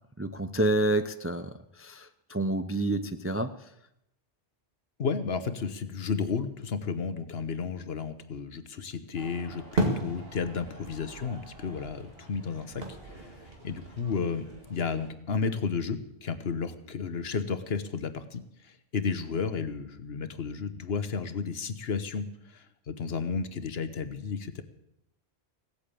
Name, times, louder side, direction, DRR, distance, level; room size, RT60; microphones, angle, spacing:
voice 1, 0.2-1.5 1.8-3.5, right 2 dB, 20° right, 9 dB, 0.4 m, -28 dB
voice 2, 5.0-12.8 13.6-22.2 22.5-24.6, left 5 dB, 65° left, 11 dB, 1.2 m, -32 dB
sound 1, 9.1-15.1, right 1 dB, 60° right, 2.6 m, -36 dB
17.0 x 8.4 x 8.5 m, 0.81 s
omnidirectional pair, 1.1 m